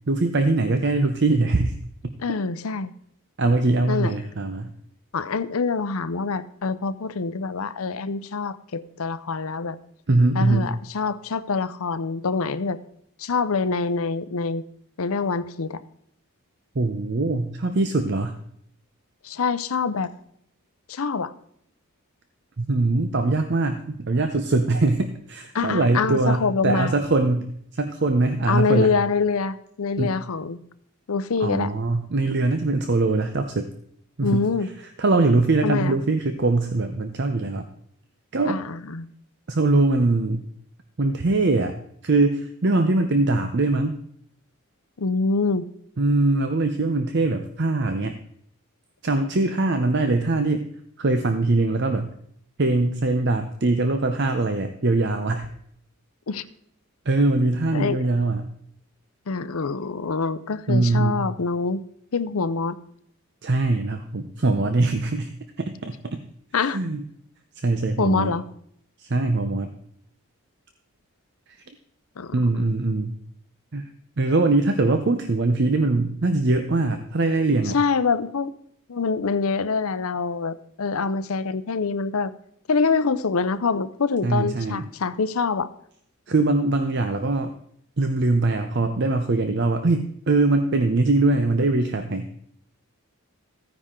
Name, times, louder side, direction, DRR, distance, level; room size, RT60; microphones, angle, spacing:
voice 1, 0.1-1.8 2.0-2.1 3.4-4.7 10.1-10.7 16.8-18.4 22.6-28.9 30.0-30.2 31.4-33.7 34.2-34.5 35.0-37.6 38.3-38.6 39.5-40.4 41.0-41.8 42.0-44.0 46.0-48.2 49.0-50.7 51.0-52.1 52.6-55.5 57.1-58.4 60.7-61.3 63.4-65.3 65.6-66.2 66.7-67.0 67.6-68.3 69.0-69.7 72.3-73.1 73.7-73.9 74.2-77.8 84.2-84.8 86.3-87.5 88.0-92.3, right 2 dB, 50° right, 8 dB, 0.7 m, -22 dB
voice 2, 2.2-2.9 3.9-4.1 5.1-9.8 10.3-12.8 13.2-14.6 15.0-15.8 19.2-20.1 20.9-21.3 25.5-26.9 28.5-30.6 31.1-31.7 34.2-34.7 35.6-35.9 38.5-39.1 45.0-45.7 56.3-56.4 57.7-58.0 59.3-61.8 62.1-62.8 66.5-66.8 68.0-68.4 72.2-72.3 77.7-78.5 78.9-82.3 82.7-85.7, left 4 dB, 75° left, 14 dB, 0.6 m, -25 dB
14.5 x 9.7 x 3.7 m, 0.70 s
head